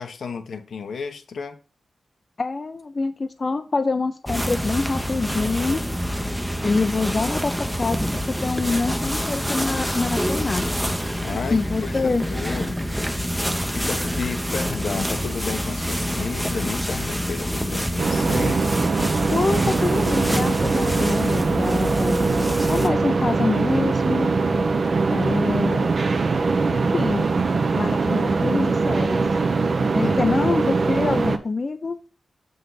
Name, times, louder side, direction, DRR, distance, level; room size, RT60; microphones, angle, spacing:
voice 1, 0.0-1.6 11.2-12.9 13.7-18.7 30.0-30.3, left 5 dB, 75° left, 1.0 m, -32 dB
voice 2, 2.4-5.8 6.6-7.5 7.8-10.7 11.5-12.2 19.3-24.3 25.1-25.9 26.7-27.3 27.8-29.2 29.9-32.0, left 3 dB, 35° left, 0.5 m, -25 dB
sound 1, 4.3-22.9, equal, ahead, 0.7 m, -27 dB
sound 2, 18.0-31.4, right 4 dB, 50° right, 0.8 m, -22 dB
6.8 x 5.4 x 4.0 m
wide cardioid pair, 130°, 0 cm